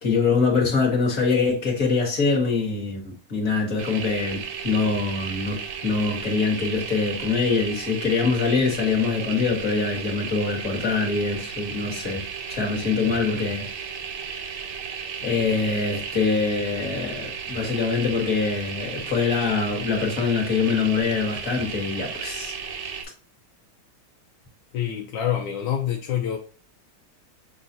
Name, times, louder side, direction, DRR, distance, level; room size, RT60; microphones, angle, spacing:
voice 1, 0.0-12.2 12.5-13.7 15.2-22.5, left 4 dB, 45° left, 1.5 m, -24 dB
sound 1, 3.8-23.0, right 6 dB, 70° right, 1.0 m, -34 dB
voice 2, 24.7-26.4, left 10 dB, 70° left, 1.2 m, -26 dB
6.4 x 2.4 x 2.6 m
omnidirectional pair, 2.3 m